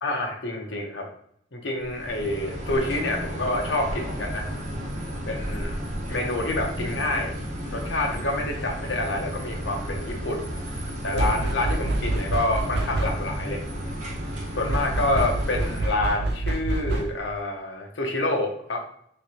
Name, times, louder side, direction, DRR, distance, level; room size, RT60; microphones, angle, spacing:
voice 1, 0.0-1.1 1.5-4.5 5.3-5.7 6.1-7.3 7.7-10.4 11.0-13.6 14.6-18.8, left 2 dB, 85° left, 2 dB, 0.9 m, -27 dB
sound 1, 1.8-15.8, equal, 40° right, 0.8 m, -33 dB
sound 2, 11.2-13.4 14.7-17.3, right 2 dB, 65° right, 0.4 m, -27 dB
3.5 x 3.2 x 2.8 m, 0.67 s
head